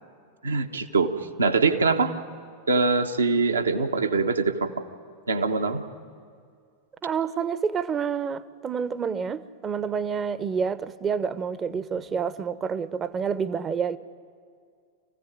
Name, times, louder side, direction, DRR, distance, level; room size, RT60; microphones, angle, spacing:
voice 1, 0.4-2.1 2.7-4.9 5.3-5.8, right 4 dB, 75° right, 5 dB, 1.3 m, -23 dB
voice 2, 7.0-14.0, right 6 dB, 25° right, 16 dB, 0.8 m, -28 dB
25.5 x 16.0 x 9.7 m, 2.2 s
figure-of-eight pair, 90°, 0 cm